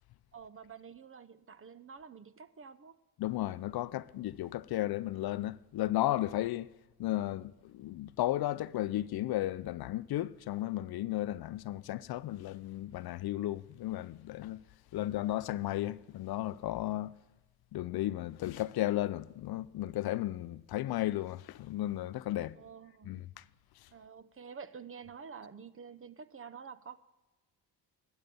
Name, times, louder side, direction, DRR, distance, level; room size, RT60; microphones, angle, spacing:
voice 1, 0.3-3.0 22.4-23.2 23.9-27.0, right 6 dB, 30° right, 0.7 m, -49 dB
voice 2, 3.2-6.7 7.0-14.6 14.9-17.2 17.7-22.6 23.1-23.4, left 15 dB, 60° left, 0.5 m, -34 dB
12.5 x 8.9 x 6.8 m
cardioid pair, 75°, 42 cm